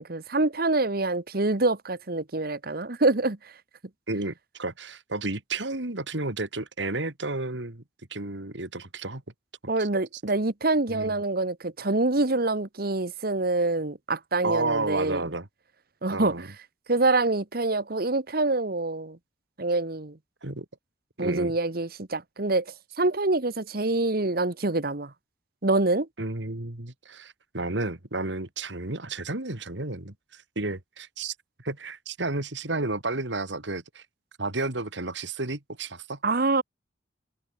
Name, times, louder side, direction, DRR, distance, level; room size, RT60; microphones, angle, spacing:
voice 1, 0.0-3.4 9.7-15.2 16.0-16.5 16.9-19.2 19.6-20.2 21.2-22.6 23.0-25.1 25.6-26.1 36.2-36.6, right 2 dB, 55° right, 1.3 m, -25 dB
voice 2, 4.1-7.8 8.1-9.2 9.8-9.9 10.9-11.2 14.4-15.5 16.1-16.5 20.4-20.7 21.2-21.5 26.2-31.3 31.6-34.0 34.4-36.2, right 2 dB, 75° right, 2.6 m, -32 dB
head